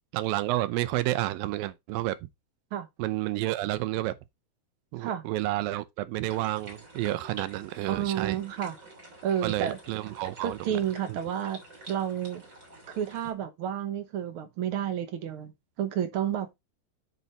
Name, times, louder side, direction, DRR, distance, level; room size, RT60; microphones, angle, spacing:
voice 1, 0.1-2.3 3.0-4.2 4.9-8.4 9.4-10.8 11.1-11.2, right 16 dB, 85° right, 2.5 m, -30 dB
sound 1, 6.3-13.3, right 1 dB, 25° right, 3.4 m, -48 dB
voice 2, 7.9-8.8 9.2-9.8 10.4-11.6 11.9-12.4 12.9-15.5 15.8-16.5, right 9 dB, 70° right, 1.2 m, -30 dB
9.1 x 5.4 x 4.0 m
omnidirectional pair, 4.0 m